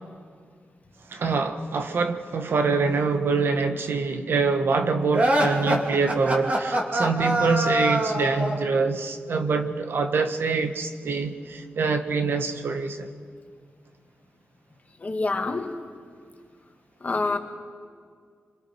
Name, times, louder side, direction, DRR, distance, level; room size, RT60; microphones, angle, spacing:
voice 1, 1.1-13.1, right 4 dB, 75° right, 1.4 m, -25 dB
sound 1, 5.1-8.7, right 1 dB, 40° right, 2.8 m, -24 dB
voice 2, 15.0-15.7 17.0-17.4, left 3 dB, 40° left, 2.1 m, -26 dB
27.0 x 25.0 x 4.6 m
cardioid pair, 80°, 4 cm